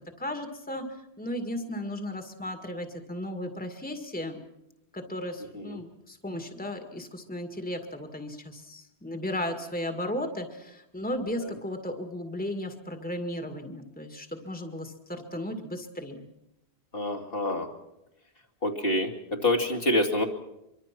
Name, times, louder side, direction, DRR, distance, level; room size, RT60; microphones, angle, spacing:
voice 1, 0.2-4.4 4.9-16.2, left 1 dB, 10° left, 6 dB, 2.0 m, -35 dB
voice 2, 16.9-17.7 18.6-20.3, left 1 dB, 60° left, 1 dB, 2.9 m, -26 dB
24.5 x 23.5 x 6.1 m, 0.85 s
omnidirectional pair, 1.1 m